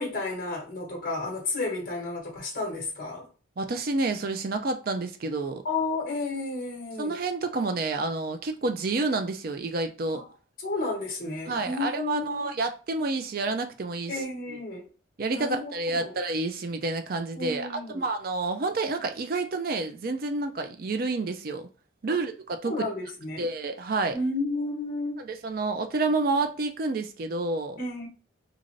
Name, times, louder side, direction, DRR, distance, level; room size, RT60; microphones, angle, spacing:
voice 1, 0.0-3.3 5.6-7.2 10.1-10.3 10.6-12.5 14.1-14.9 15.3-16.2 17.3-18.0 22.6-23.4 24.1-25.3 27.8-28.1, left 3 dB, 45° left, 1.0 m, -32 dB
voice 2, 3.6-5.6 7.0-10.2 11.5-14.1 14.5-14.6 15.2-17.7 17.9-21.7 22.0-22.8 23.4-24.2 25.2-27.8, right 3 dB, 45° right, 0.4 m, -29 dB
2.5 x 2.5 x 3.1 m
head